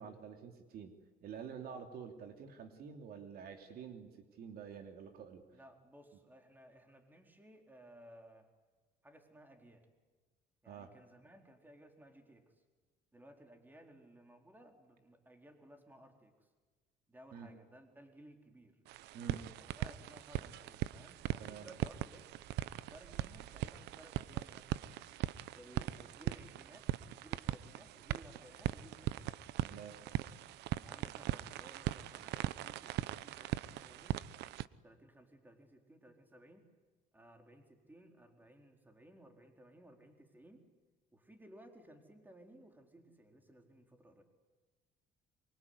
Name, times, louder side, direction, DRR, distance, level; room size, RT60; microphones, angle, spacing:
voice 1, 0.0-5.6 10.6-10.9 17.3-17.5 19.1-19.4 21.4-21.7 29.7-30.0, right 7 dB, 65° right, 6 dB, 2.9 m, -48 dB
voice 2, 5.5-8.5 9.0-9.9 10.6-12.5 13.1-16.5 17.1-18.8 19.6-22.4 22.9-25.0 25.5-29.4 30.7-34.2 34.8-36.7 37.1-40.7 41.1-44.2, right 1 dB, 10° right, 4 dB, 4.2 m, -59 dB
sound 1, 18.9-34.7, right 15 dB, 85° right, 0.8 m, -40 dB
25.0 x 24.0 x 9.7 m, 1.3 s
cardioid pair, 110°, 17 cm